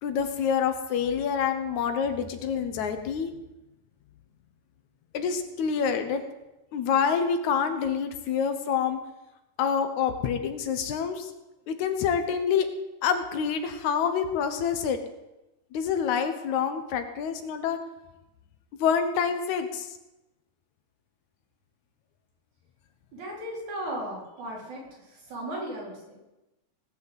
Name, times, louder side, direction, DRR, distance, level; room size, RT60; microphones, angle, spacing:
voice 1, 0.0-3.3 5.1-6.2 6.7-9.0 9.6-11.3 11.7-12.7 13.0-15.0 15.7-17.8 18.8-19.9, left 7 dB, 75° left, 8 dB, 2.4 m, -27 dB
voice 2, 23.1-24.8 25.3-26.2, right 1 dB, 75° right, -3 dB, 5.4 m, -36 dB
18.0 x 6.3 x 8.0 m, 0.98 s
omnidirectional pair, 3.4 m